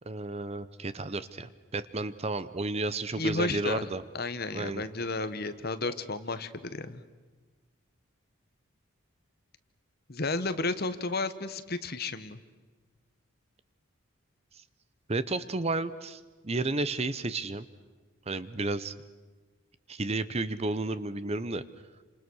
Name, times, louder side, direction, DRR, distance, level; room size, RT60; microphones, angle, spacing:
voice 1, 0.1-4.0 4.5-4.8 15.1-17.6 18.3-18.9 19.9-21.6, right 2 dB, 30° right, 14 dB, 0.7 m, -32 dB
voice 2, 3.2-3.9 4.1-7.0 10.1-12.4, left 3 dB, 45° left, 11 dB, 1.2 m, -32 dB
29.0 x 27.0 x 6.3 m, 1.3 s
head